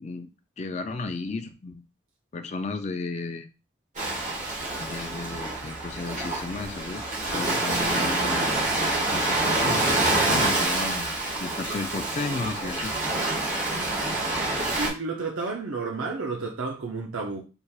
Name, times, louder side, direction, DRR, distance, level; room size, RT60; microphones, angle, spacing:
voice 1, 0.6-1.8 2.3-3.5 4.8-7.0 7.3-8.8 9.1-12.9, left 3 dB, 35° left, 0.3 m, -34 dB
Ocean, 4.0-14.9, right 2 dB, 35° right, 1.5 m, -27 dB
voice 2, 14.8-17.4, right 3 dB, 75° right, 0.6 m, -31 dB
4.4 x 3.4 x 2.3 m
head